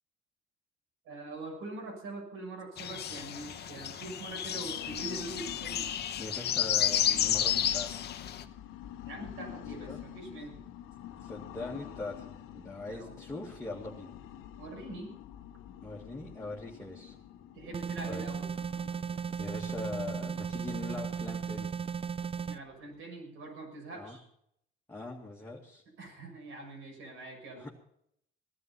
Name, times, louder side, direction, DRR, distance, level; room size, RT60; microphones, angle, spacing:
voice 1, 1.1-5.9 9.0-10.6 12.9-13.2 14.6-15.1 17.5-18.5 22.4-24.2 26.0-27.7, right 2 dB, 85° right, 0 dB, 6.9 m, -43 dB
sound 1, 2.8-8.4, left 10 dB, 55° left, 1.0 m, -31 dB
sound 2, 4.3-23.0, left 11 dB, 85° left, 1.2 m, -48 dB
voice 2, 6.2-7.9 9.9-10.0 11.2-12.2 12.5-14.2 15.8-17.1 18.1-18.3 19.3-21.7 23.9-24.2 24.9-25.8 27.6-27.7, left 2 dB, 15° left, -3 dB, 2.2 m, -41 dB
sound 3, 17.7-22.6, right 6 dB, 25° right, 0.5 m, -36 dB
17.0 x 11.5 x 5.6 m, 0.71 s
cardioid pair, 120°, 21 cm